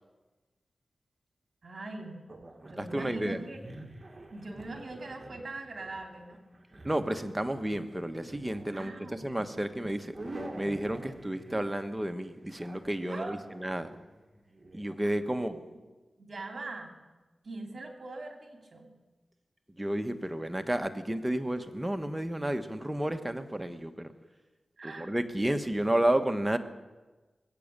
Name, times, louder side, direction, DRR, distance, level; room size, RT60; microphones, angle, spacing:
voice 1, 1.6-2.2 2.7-3.7 4.3-6.4 8.7-9.6 13.1-13.4 15.0-15.6 16.2-16.9 17.4-18.9 24.8-25.1, right 2 dB, 55° right, 3 dB, 2.8 m, -42 dB
sound 1, 2.3-15.0, right 1 dB, 35° right, 1.9 m, -48 dB
voice 2, 2.8-3.4 6.8-10.1 10.6-13.9 14.7-15.6 19.8-24.1 24.8-26.6, right 1 dB, 15° right, 8 dB, 1.3 m, -31 dB
21.0 x 8.6 x 6.8 m, 1.2 s
cardioid pair, 50°, 0 cm